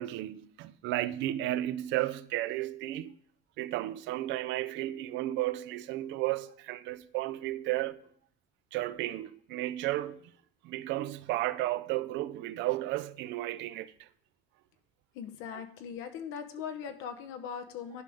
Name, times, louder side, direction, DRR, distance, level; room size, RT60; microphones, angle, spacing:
voice 1, 0.0-3.2 3.6-8.0 8.7-10.3 10.6-14.1 15.5-15.6, right 15 dB, 60° right, 0.4 m, -33 dB
voice 2, 15.1-18.0, left 7 dB, 75° left, 0.9 m, -40 dB
10.5 x 5.2 x 3.5 m
cardioid pair, 160°, 21 cm